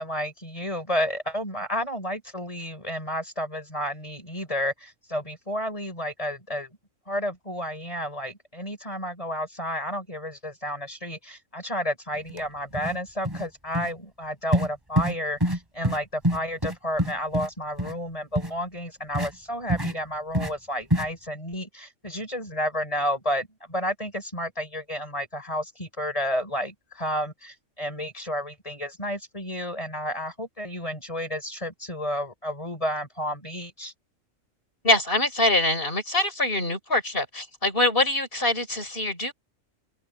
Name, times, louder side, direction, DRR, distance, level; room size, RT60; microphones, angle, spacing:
voice 1, 0.0-6.8 7.1-33.9, equal, 25° left, 5.0 m, -31 dB
sound 1, 12.3-12.4 12.7-13.0 13.2-13.5 13.7-13.9 14.5-14.7 15.0-15.1 15.4-15.6 15.8-16.0 16.2-17.5 17.8-17.9 18.3-18.5 19.1-19.3 19.7-19.9 20.3-20.5 20.9-21.1, equal, 15° right, 4.8 m, -25 dB
voice 2, 34.8-39.3, left 1 dB, 45° left, 4.7 m, -24 dB
omnidirectional pair, 1.4 m